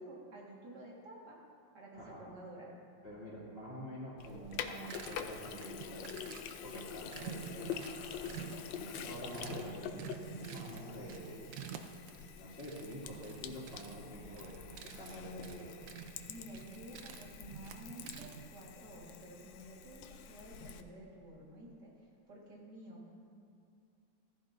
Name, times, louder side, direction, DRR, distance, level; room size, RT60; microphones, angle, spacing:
voice 1, 0.0-1.4 1.7-2.7 16.3-21.9 22.3-23.0, right 1 dB, 65° right, -4 dB, 2.5 m, -51 dB
voice 2, 3.0-6.1 6.6-11.8 12.1-15.8, equal, 30° left, -6 dB, 2.7 m, -47 dB
Sink (filling or washing), 4.2-20.8, left 8 dB, 85° left, 1.3 m, -47 dB
sound 1, 4.2-18.6, right 8 dB, 85° right, 1.4 m, -50 dB
15.0 x 15.0 x 2.6 m, 2.5 s
omnidirectional pair, 2.0 m